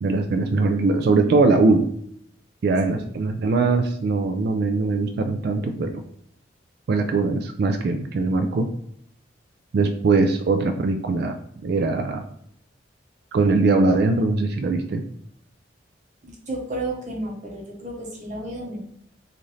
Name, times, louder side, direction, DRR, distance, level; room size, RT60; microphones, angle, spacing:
voice 1, 0.0-1.9 2.6-6.0 6.9-8.7 9.7-11.4 11.6-12.2 13.3-15.0, right 3 dB, 55° right, 6 dB, 0.3 m, -21 dB
voice 2, 16.2-18.8, right 1 dB, 40° right, -1 dB, 0.8 m, -32 dB
3.2 x 2.5 x 3.9 m, 0.68 s
head